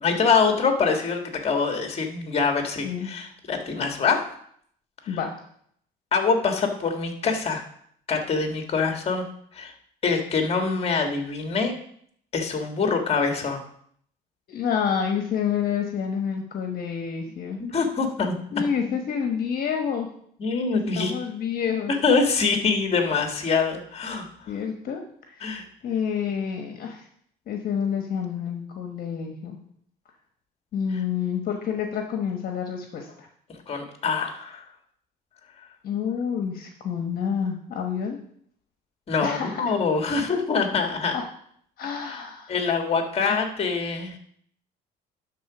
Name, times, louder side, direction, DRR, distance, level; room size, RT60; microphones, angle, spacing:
voice 1, 0.0-4.2 6.1-7.6 8.1-9.2 9.5-9.7 10.0-11.7 12.3-13.6 17.7-18.3 18.9-19.0 20.4-21.1 22.0-24.3 25.4-25.6 33.7-34.7 39.1-41.2 42.1-42.2 42.5-44.1, left 5 dB, 35° left, 4 dB, 1.7 m, -24 dB
voice 2, 14.5-17.6 18.5-20.1 20.7-21.9 24.5-25.0 25.3-27.0 27.5-29.6 30.7-33.3 35.8-38.2 39.2-39.6 41.1-41.2 41.8-42.5 43.2-43.4, left 7 dB, 60° left, 3 dB, 1.2 m, -28 dB
11.5 x 3.9 x 6.1 m, 0.65 s
cardioid pair, 110°, 17 cm